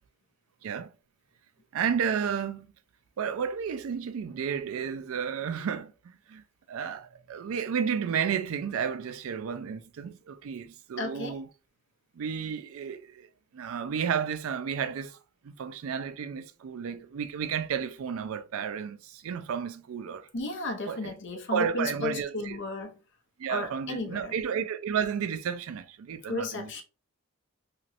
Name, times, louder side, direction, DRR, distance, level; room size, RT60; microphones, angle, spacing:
voice 1, 1.7-2.7 3.2-5.9 6.3-6.4 6.7-11.5 12.2-13.3 13.5-15.2 15.4-20.3 20.9-22.6 23.4-26.8, right 7 dB, 65° right, 0.3 m, -32 dB
voice 2, 11.0-11.4 20.3-23.0 23.5-24.3 26.3-26.8, left 2 dB, 55° left, 0.6 m, -34 dB
2.9 x 2.8 x 2.5 m
head